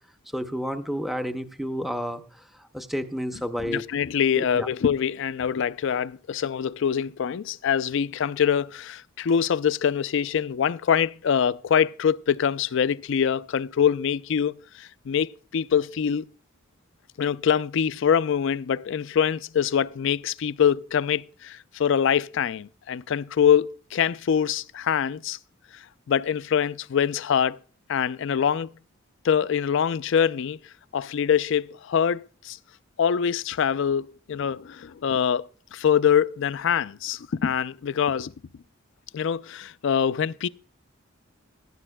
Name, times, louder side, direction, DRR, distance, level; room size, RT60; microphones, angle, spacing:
voice 1, 0.3-2.2 2.6-3.8 4.3-4.7, equal, ahead, 0.6 m, -30 dB
voice 2, 3.6-16.3 17.2-25.4 26.1-27.6 27.9-28.7 29.2-30.6 30.9-32.6 33.0-38.3 39.1-40.5, left 8 dB, 60° left, 0.4 m, -24 dB
16.0 x 11.5 x 2.2 m
head